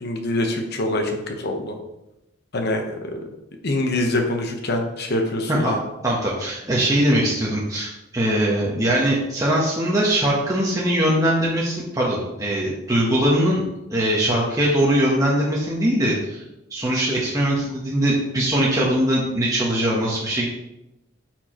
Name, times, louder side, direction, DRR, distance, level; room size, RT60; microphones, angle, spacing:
voice 1, 0.0-1.7 2.5-2.8 3.1-3.2 3.6-5.8, left 1 dB, 55° left, 3 dB, 1.0 m, -24 dB
voice 2, 6.0-13.6 13.9-16.4 16.7-20.5, right 1 dB, 20° right, -5 dB, 1.0 m, -21 dB
9.2 x 4.5 x 3.0 m, 0.91 s
head